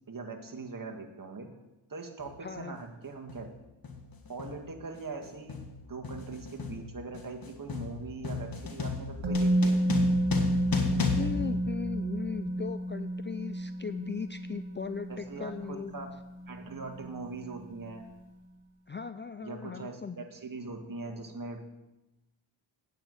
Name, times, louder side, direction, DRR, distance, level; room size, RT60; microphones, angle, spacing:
voice 1, 0.1-1.6 1.9-3.5 4.3-5.6 5.9-9.8 15.1-16.1 16.5-18.1 19.4-21.7, right 3 dB, 40° right, 2 dB, 1.8 m, -41 dB
sound 1, 2.2-2.4 3.3-3.6 3.8-12.4, left 4 dB, 45° left, 1.6 m, -35 dB
voice 2, 2.4-2.8 11.1-15.9 18.9-20.2, left 6 dB, 25° left, 11 dB, 0.4 m, -38 dB
Musical instrument, 9.2-17.1 17.4-17.6, right 1 dB, 60° right, 1.8 m, -30 dB
8.9 x 5.4 x 7.7 m, 1.0 s
cardioid pair, 55°, 49 cm